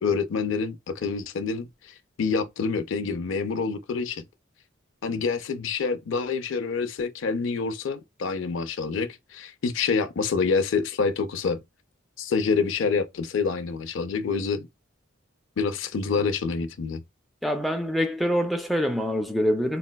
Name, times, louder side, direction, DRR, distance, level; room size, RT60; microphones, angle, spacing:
voice 1, 0.0-1.7 2.2-4.2 5.0-11.6 12.2-14.7 15.6-17.0, left 5 dB, 65° left, 0.4 m, -27 dB
voice 2, 17.4-19.8, equal, ahead, 0.3 m, -25 dB
4.1 x 2.1 x 2.2 m
head